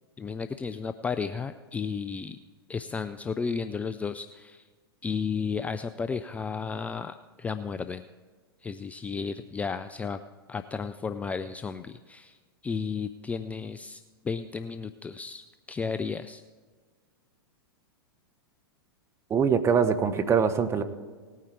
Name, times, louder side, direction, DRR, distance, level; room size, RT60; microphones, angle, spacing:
voice 1, 0.2-2.4 2.7-4.7 5.0-8.0 8.6-10.2 10.5-16.4, left 5 dB, 10° left, 11 dB, 0.3 m, -33 dB
voice 2, 19.3-20.8, right 6 dB, 20° right, 8 dB, 1.0 m, -23 dB
18.0 x 9.3 x 4.5 m, 1.5 s
figure-of-eight pair, 100°, 13 cm